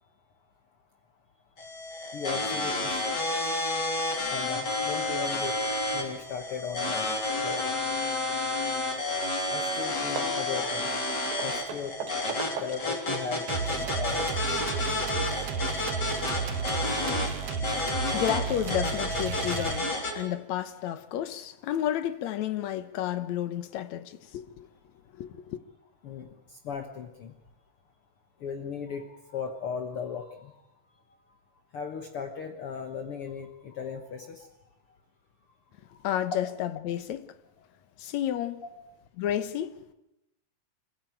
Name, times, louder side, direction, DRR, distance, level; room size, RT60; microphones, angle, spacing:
sound 1, 1.6-20.1, left 2 dB, 35° left, 3.9 m, -30 dB
voice 1, 2.1-3.2 3.5-3.8 4.2-8.1 9.5-11.0 11.4-12.0 12.5-14.4 16.1-16.2 16.5-18.0 26.0-27.4 28.4-30.6 31.7-34.5 35.9-36.1 38.6-38.7, left 6 dB, 55° left, 2.1 m, -38 dB
Hammer / Wood, 9.2-9.3 9.6-9.8 10.2-13.0 13.5-14.5, right 8 dB, 80° right, 2.9 m, -40 dB
sound 2, 13.5-20.2, right 7 dB, 65° right, 2.0 m, -33 dB
voice 2, 18.1-24.7 25.1-25.6 36.0-37.3 38.0-38.6 39.2-39.9, left 11 dB, 75° left, 2.3 m, -31 dB
26.5 x 15.5 x 9.2 m
omnidirectional pair, 3.3 m